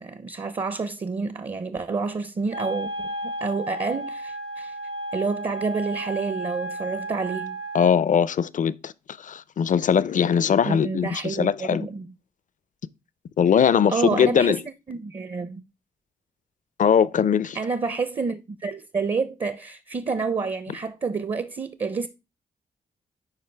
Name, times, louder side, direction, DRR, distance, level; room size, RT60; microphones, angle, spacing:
voice 1, 0.0-4.8 5.1-7.6 10.6-12.1 13.9-14.6 14.9-15.6 17.5-22.1, right 4 dB, 30° right, 0.5 m, -29 dB
Wind instrument woodwind instrument, 2.5-7.9, right 1 dB, 80° right, 1.6 m, -33 dB
voice 2, 7.7-8.9 9.2-11.9 13.4-14.6 16.8-17.6, left 7 dB, 50° left, 0.5 m, -21 dB
10.5 x 4.5 x 3.3 m
cardioid pair, 85°, 17 cm